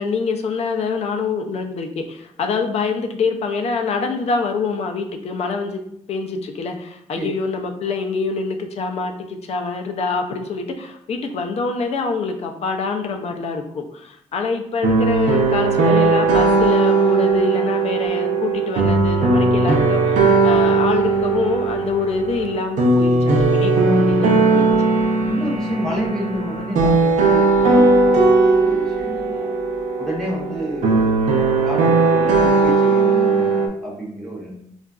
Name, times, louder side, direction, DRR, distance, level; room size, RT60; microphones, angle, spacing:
voice 1, 0.0-5.8 6.1-24.7, left 4 dB, 60° left, 5 dB, 0.4 m, -25 dB
sound 1, 14.8-33.7, right 3 dB, 80° right, 0.5 m, -17 dB
voice 2, 25.3-29.5 30.0-31.2 31.5-34.5, right 1 dB, 5° left, -4 dB, 0.8 m, -29 dB
3.7 x 2.4 x 2.3 m, 0.73 s
cardioid pair, 125°, 12 cm